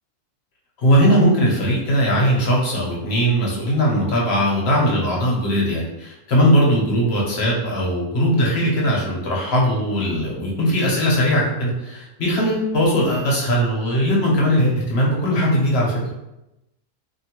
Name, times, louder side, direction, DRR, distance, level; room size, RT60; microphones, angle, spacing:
voice 1, 0.8-16.0, equal, 50° left, -3 dB, 0.8 m, -19 dB
2.6 x 2.6 x 2.9 m, 0.92 s
omnidirectional pair, 1.7 m